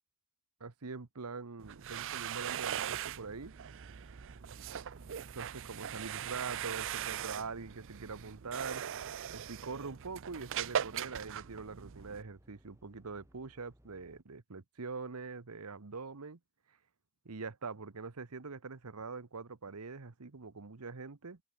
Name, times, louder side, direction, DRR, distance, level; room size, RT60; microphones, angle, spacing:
voice 1, 0.6-3.5 5.3-8.8 9.3-16.4 16.7-16.8 17.2-21.4, right 4 dB, 80° right, 1.1 m, -44 dB
sound 1, 1.6-12.2, right 9 dB, 60° right, 0.5 m, -40 dB
sound 2, 2.4-14.2, equal, 10° right, 2.0 m, -64 dB
open air
head